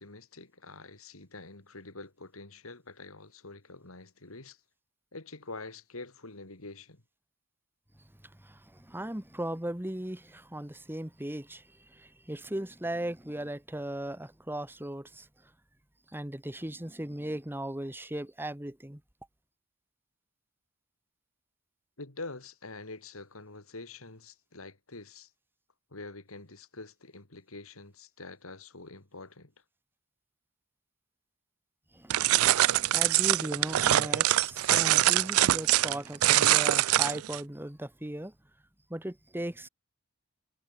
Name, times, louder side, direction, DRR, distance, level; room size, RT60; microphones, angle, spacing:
voice 1, 0.0-4.6 5.1-7.0 22.0-25.3 25.9-29.5, left 3 dB, 80° left, 3.1 m, -46 dB
voice 2, 8.4-15.3 16.1-19.0 31.9-38.3 38.9-39.7, right 1 dB, 10° right, 1.6 m, -37 dB
sound 1, 32.1-37.4, right 14 dB, 85° right, 0.4 m, -24 dB
head